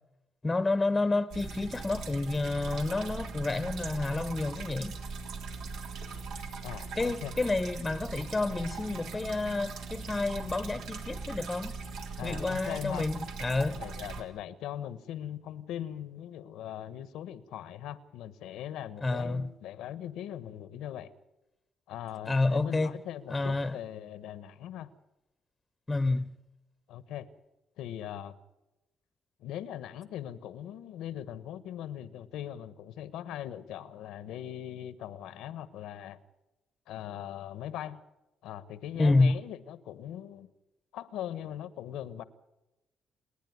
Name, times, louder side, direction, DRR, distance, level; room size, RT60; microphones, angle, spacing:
voice 1, 0.4-5.0 7.0-11.8 12.2-13.8 19.0-19.5 22.2-23.0 23.3-23.8 25.9-26.3 39.0-39.4, left 3 dB, 20° left, 0.9 m, -29 dB
sound 1, 1.3-14.2, right 4 dB, 85° right, 3.3 m, -40 dB
voice 2, 6.6-7.3 12.2-13.1 13.7-21.1 21.9-24.9 26.9-27.3 27.8-28.4 29.4-36.2 36.9-38.0 38.4-40.5 40.9-42.2, left 11 dB, 90° left, 1.2 m, -40 dB
28.5 x 10.0 x 9.5 m
cardioid pair, 90°, 0 cm